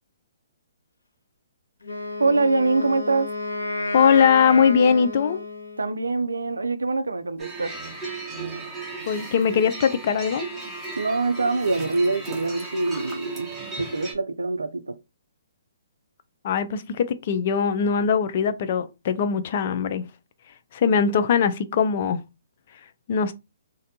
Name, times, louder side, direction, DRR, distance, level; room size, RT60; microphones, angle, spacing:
Wind instrument woodwind instrument, 1.8-6.0, left 2 dB, 90° left, 0.7 m, -31 dB
voice 1, 2.2-3.3 5.8-7.7 11.0-13.5 13.8-15.0, right 3 dB, 90° right, 0.3 m, -24 dB
voice 2, 3.9-5.4 9.1-10.5 16.4-20.0 20.7-22.2 23.1-23.3, left 6 dB, 50° left, 0.4 m, -21 dB
sound 1, 7.4-14.1, right 3 dB, 10° right, 0.9 m, -35 dB
2.6 x 2.1 x 2.7 m
hypercardioid pair, 135°, 0 cm